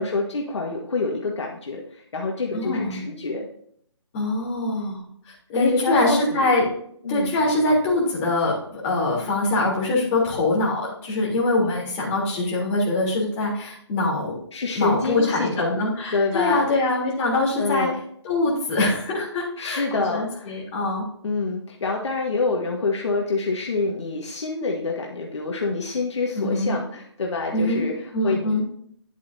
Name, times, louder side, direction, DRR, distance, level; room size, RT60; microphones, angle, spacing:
voice 1, 0.0-3.5 5.5-6.5 7.0-7.3 14.5-15.7 16.1-16.7 17.5-18.0 19.6-20.6 21.2-27.9 28.2-28.6, left 3 dB, 65° left, 0 dB, 1.6 m, -26 dB
voice 2, 2.5-3.0 4.1-6.7 7.1-14.4 14.7-17.9 18.2-21.0 26.3-26.7 27.5-27.8 28.1-28.6, left 2 dB, 25° left, -4 dB, 3.4 m, -23 dB
10.5 x 8.2 x 2.7 m, 0.66 s
hypercardioid pair, 155°, 16 cm